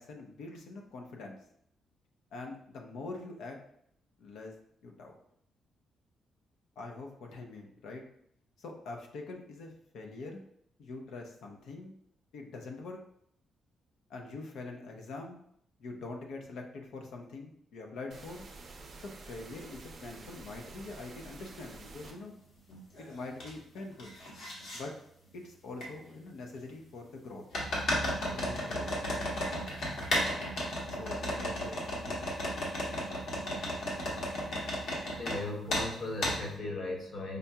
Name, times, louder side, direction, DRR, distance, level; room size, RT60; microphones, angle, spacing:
voice 1, 0.0-1.4 2.3-3.6 4.2-4.5 4.8-5.2 6.8-8.0 8.6-10.4 10.8-11.9 12.3-13.0 14.1-15.4 15.8-18.5 19.0-22.3 23.0-24.1 24.7-24.9 25.3-27.4 28.3-29.5 30.9-32.3, left 3 dB, 85° left, 2 dB, 0.7 m, -44 dB
Surround Test - Pink Noise, 18.1-22.1, right 3 dB, 45° right, 0.5 m, -49 dB
sound 1, 22.0-22.1 22.7-23.5 23.8-24.8 25.8-25.9 27.5-35.4 35.7-35.9 36.2-36.4, left 1 dB, 65° left, 1.2 m, -34 dB
voice 2, 35.1-37.4, left 2 dB, 50° left, -1 dB, 0.9 m, -37 dB
5.1 x 2.8 x 2.3 m, 0.71 s
cardioid pair, 160°, 0 cm